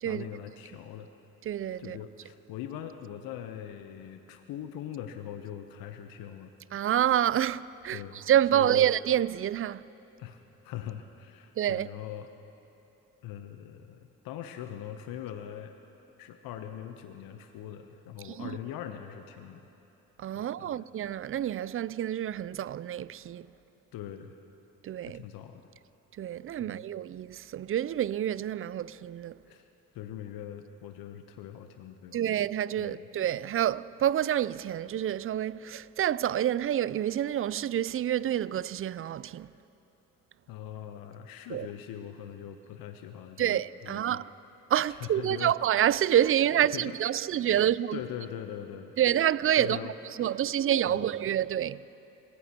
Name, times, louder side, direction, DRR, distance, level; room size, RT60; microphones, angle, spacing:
voice 1, 0.0-1.1 1.8-6.5 7.9-8.2 8.5-8.9 10.2-12.3 13.2-15.7 16.2-19.6 20.3-20.8 23.9-24.3 25.1-25.6 26.6-26.8 29.5-29.7 29.9-32.3 32.8-33.1 40.5-44.2 44.9-45.5 46.7-47.0 47.9-48.9 49.6-50.0 50.8-51.1, left 10 dB, 65° left, 0.9 m, -41 dB
voice 2, 1.5-2.0 6.7-9.8 11.6-11.9 18.2-18.6 20.2-23.5 24.8-25.2 26.2-29.4 32.1-39.5 41.5-41.7 43.4-44.2 44.7-48.0 49.0-49.8 50.2-51.8, right 11 dB, 35° right, 0.4 m, -28 dB
28.0 x 16.0 x 3.0 m
hypercardioid pair, 50°, 38 cm